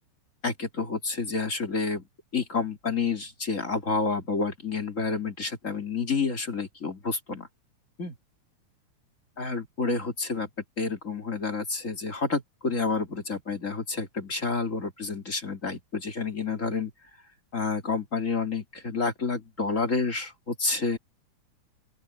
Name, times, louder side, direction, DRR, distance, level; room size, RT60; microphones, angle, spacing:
voice 1, 0.4-2.0 2.3-7.5 8.0-8.1 9.4-10.5 10.8-16.9 17.5-21.0, left 4 dB, 25° left, 2.4 m, -29 dB
open air
omnidirectional pair, 3.5 m